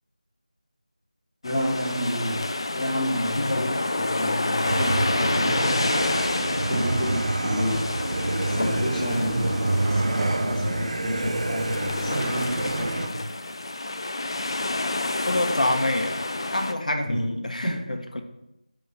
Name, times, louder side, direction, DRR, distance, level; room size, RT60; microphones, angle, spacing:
sound 1, 1.4-16.7, left 2 dB, 40° left, 0.4 m, -29 dB
voice 1, 1.4-2.4 2.7-3.7 3.9-6.0 6.7-7.8 8.5-13.2 17.0-17.2 17.6-17.8, equal, 20° left, -10 dB, 2.8 m, -29 dB
voice 2, 3.4-3.7 4.5-4.6 15.3-16.2 16.5-18.2, left 1 dB, 65° left, 5 dB, 1.0 m, -27 dB
sound 2, 4.6-13.1, right 2 dB, 50° right, 0.5 m, -27 dB
sound 3, 5.8-11.1, equal, 85° right, 1.2 m, -40 dB
9.2 x 3.3 x 5.4 m, 0.87 s
figure-of-eight pair, 170°, 4 cm